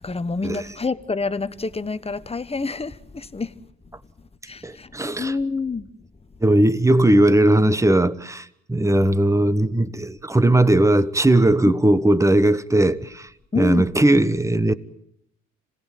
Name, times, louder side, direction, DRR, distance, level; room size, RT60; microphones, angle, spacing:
voice 1, 0.0-3.6 4.5-4.9 5.2-5.9 13.5-13.9, left 3 dB, 20° left, 1.2 m, -27 dB
voice 2, 4.6-5.3 6.4-13.3 13.5-14.7, right 1 dB, 10° right, 1.2 m, -18 dB
26.5 x 18.0 x 9.3 m
cardioid pair, 90°, 30 cm